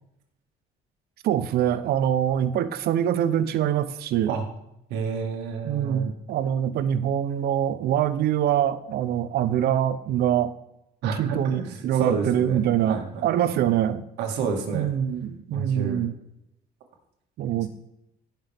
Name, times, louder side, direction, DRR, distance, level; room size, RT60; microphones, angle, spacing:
voice 1, 1.2-4.3 5.6-10.5 11.0-14.0 14.7-16.1 17.4-17.7, right 10 dB, 70° right, 14 dB, 0.7 m, -24 dB
voice 2, 4.9-6.1 11.0-12.6 12.9-13.3 14.2-14.9 15.5-16.0, right 5 dB, 90° right, 3 dB, 1.8 m, -29 dB
16.0 x 5.8 x 3.5 m, 0.84 s
cardioid pair, 110°, 17 cm